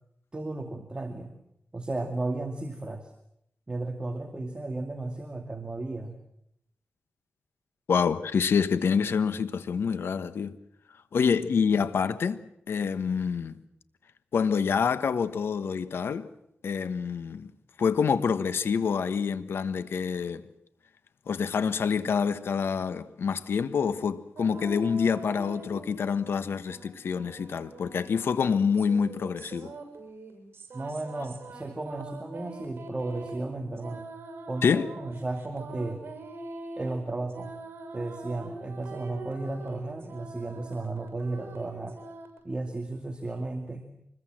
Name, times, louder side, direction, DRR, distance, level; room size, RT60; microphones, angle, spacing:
voice 1, 0.3-1.3 1.7-3.1 3.7-6.2 11.4-11.6 30.7-34.1 34.5-36.0 36.8-37.5 37.9-42.0 42.4-43.9, right 2 dB, 25° right, 2.4 m, -34 dB
voice 2, 7.9-10.6 11.1-12.4 12.7-13.6 14.3-16.3 16.6-17.5 17.8-20.4 21.3-29.7 34.6-34.9, left 6 dB, 80° left, 1.3 m, -27 dB
sound 1, 24.4-26.4 26.7-42.4, right 3 dB, 70° right, 7.1 m, -43 dB
25.0 x 21.5 x 7.6 m
cardioid pair, 75°, 4 cm